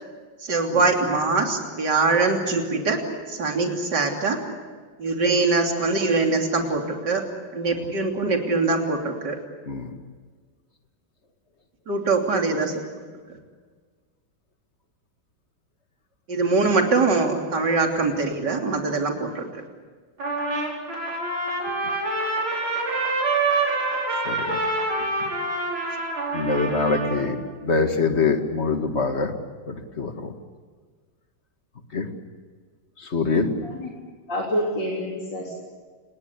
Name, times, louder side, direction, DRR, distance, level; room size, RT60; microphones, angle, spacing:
voice 1, 0.4-3.0 3.3-4.4 5.0-7.2 7.5-9.4 11.9-12.8 16.3-19.4, right 3 dB, 55° right, 2 dB, 3.8 m, -23 dB
Trumpet, 20.2-27.3, right 2 dB, 80° right, 6.0 m, -26 dB
voice 2, 24.3-24.6 26.3-27.4 27.6-29.3 29.7-30.3 31.9-32.1 33.0-33.5, left 4 dB, 35° left, 6 dB, 2.1 m, -24 dB
voice 3, 34.3-35.5, equal, 60° left, -1 dB, 4.2 m, -27 dB
29.5 x 20.0 x 8.4 m, 1.5 s
omnidirectional pair, 2.2 m